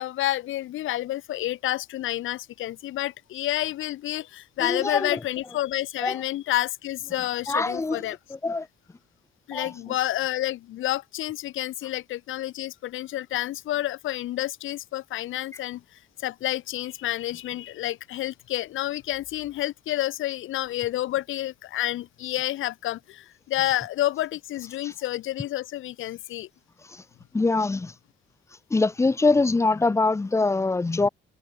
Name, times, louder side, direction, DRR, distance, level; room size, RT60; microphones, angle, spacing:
voice 1, 0.0-8.2 9.5-26.5, left 14 dB, 85° left, 2.7 m, -29 dB
voice 2, 4.6-5.2 6.0-6.2 7.5-8.0 8.4-8.7 9.5-9.7 24.8-24.9 26.9-27.0 27.3-27.9 28.7-31.1, left 3 dB, 15° left, 0.4 m, -23 dB
cardioid pair, 90°, 20 cm